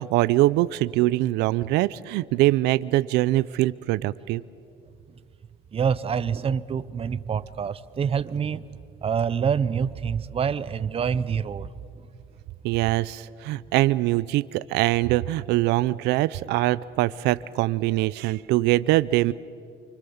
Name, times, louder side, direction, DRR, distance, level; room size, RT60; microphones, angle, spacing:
voice 1, 0.0-4.4 12.6-19.3, right 17 dB, 90° right, 17 dB, 0.5 m, -23 dB
voice 2, 5.7-8.6 9.0-11.7, right 7 dB, 35° right, 16 dB, 0.8 m, -26 dB
28.0 x 25.5 x 7.1 m, 2.4 s
cardioid pair, 110°, 17 cm